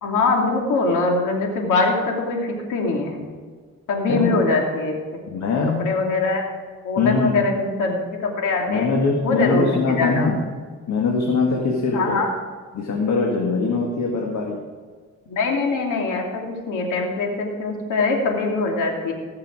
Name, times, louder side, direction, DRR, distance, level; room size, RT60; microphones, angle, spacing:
voice 1, 0.0-3.2 3.9-5.0 5.8-6.4 6.8-8.9 9.2-10.3 11.9-12.3 15.3-19.1, left 3 dB, 85° left, 1 dB, 2.8 m, -22 dB
voice 2, 4.1-4.4 5.3-6.0 7.0-7.4 8.7-10.5 10.9-12.2 12.7-14.6, left 4 dB, 60° left, 0 dB, 2.0 m, -22 dB
18.5 x 6.8 x 4.9 m, 1.6 s
cardioid pair, 90°, 30 cm